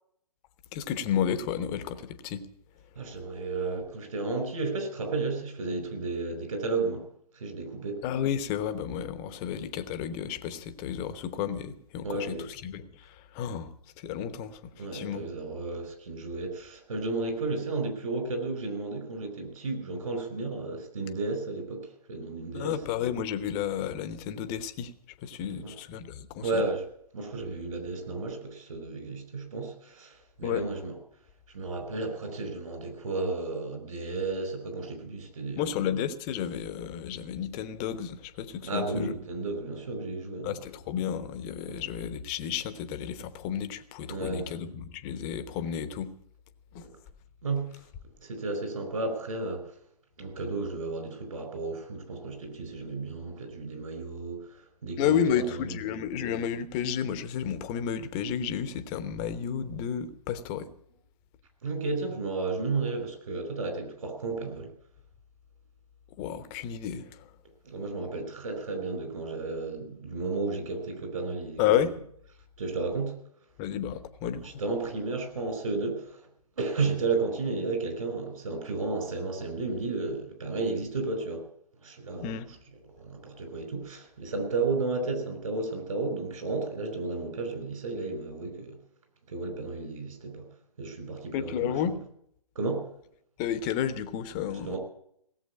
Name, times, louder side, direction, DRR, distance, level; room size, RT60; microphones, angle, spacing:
voice 1, 0.7-2.5 8.0-12.4 12.6-13.7 14.0-15.3 22.5-24.9 25.2-26.6 30.4-30.7 35.6-39.1 40.4-46.1 46.7-46.9 55.0-60.7 66.2-67.3 71.6-72.0 73.6-74.5 82.2-82.5 91.3-92.0 93.4-94.8, left 9 dB, 25° left, 0.9 m, -31 dB
voice 2, 2.9-7.0 7.3-8.0 12.0-12.5 14.8-22.8 25.4-25.7 26.4-26.9 27.1-31.0 31.5-35.6 38.6-40.6 41.7-41.8 44.1-44.5 46.8-47.0 47.4-47.7 48.2-49.7 50.2-55.8 61.6-64.7 67.6-71.7 72.6-73.1 74.4-76.2 76.6-81.5 81.8-82.3 82.9-88.7 89.3-90.4 90.8-91.9 92.5-92.8 94.6-94.8, right 3 dB, 60° right, 4.7 m, -33 dB
17.5 x 8.0 x 9.5 m
figure-of-eight pair, 130°, 20 cm